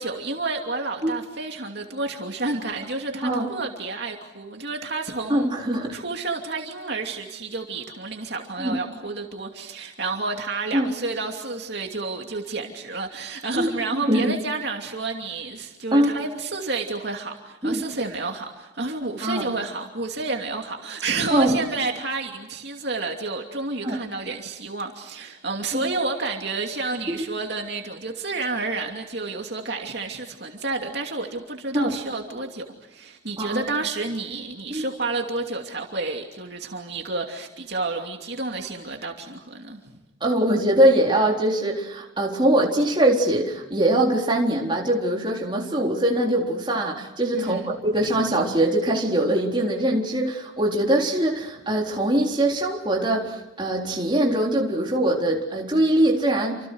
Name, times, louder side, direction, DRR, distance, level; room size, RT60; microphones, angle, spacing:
voice 1, 0.0-5.5 5.9-40.0 47.3-47.7 48.0-48.1, right 3 dB, 55° right, 2 dB, 2.8 m, -30 dB
voice 2, 5.3-6.0 8.6-8.8 10.7-10.9 13.5-13.7 14.1-14.3 15.9-16.1 17.6-17.8 19.2-19.5 21.3-21.6 23.8-24.0 25.7-25.8 27.1-27.2 31.7-31.9 33.4-33.6 34.7-34.8 40.2-56.6, right 1 dB, 25° right, -1 dB, 3.9 m, -22 dB
29.5 x 27.0 x 6.5 m, 0.94 s
head